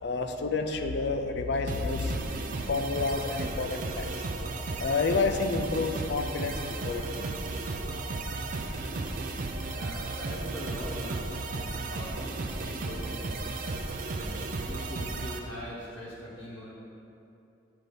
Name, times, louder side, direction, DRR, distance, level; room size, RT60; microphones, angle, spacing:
voice 1, 0.0-4.3 4.8-7.3, left 4 dB, 60° left, 6 dB, 0.4 m, -30 dB
sound 1, 1.7-15.4, right 2 dB, 45° right, 0.4 m, -34 dB
voice 2, 8.7-9.0 9.7-12.3 12.6-13.5 14.0-16.7, equal, 85° left, -8 dB, 0.9 m, -42 dB
7.6 x 2.7 x 5.1 m, 2.8 s
head